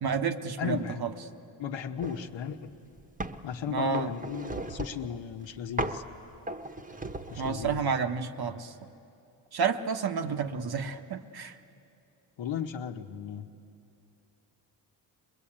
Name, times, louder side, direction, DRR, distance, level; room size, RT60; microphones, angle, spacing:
voice 1, 0.0-1.1 3.7-4.1 7.4-8.7 9.5-11.5, right 5 dB, 55° right, 7 dB, 1.2 m, -30 dB
voice 2, 0.6-1.0 1.6-2.7 3.4-6.0 7.3-7.9 10.1-10.4 12.4-13.5, left 8 dB, 75° left, 6 dB, 1.2 m, -35 dB
sound 1, 2.0-2.3 2.7-3.5 3.9-5.1 5.8-6.1 6.5-7.8, right 2 dB, 20° right, 1.1 m, -36 dB
21.5 x 21.5 x 8.8 m, 2.7 s
cardioid pair, 80°, 45 cm